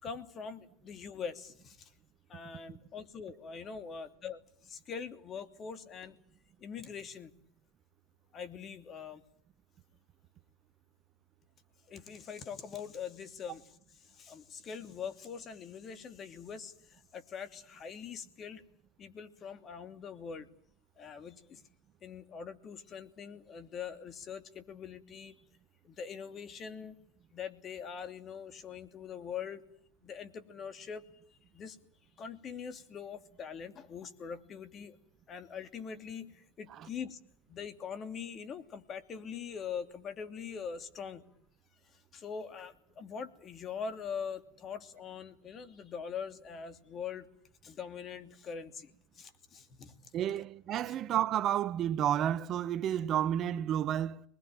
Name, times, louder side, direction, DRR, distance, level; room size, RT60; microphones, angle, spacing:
voice 1, 0.0-1.9 2.3-6.2 6.6-7.3 8.3-9.2 11.9-18.6 19.0-20.5 21.0-21.6 22.0-25.4 25.8-27.0 27.3-29.6 30.0-31.0 31.5-31.8 32.2-35.0 35.3-37.2 37.5-41.2 41.8-47.3 47.6-50.1 50.8-51.0, left 6 dB, 40° left, 2.8 m, -43 dB
voice 2, 50.1-54.2, right 10 dB, 50° right, 1.1 m, -31 dB
25.5 x 21.0 x 9.1 m
hypercardioid pair, 80°, 0 cm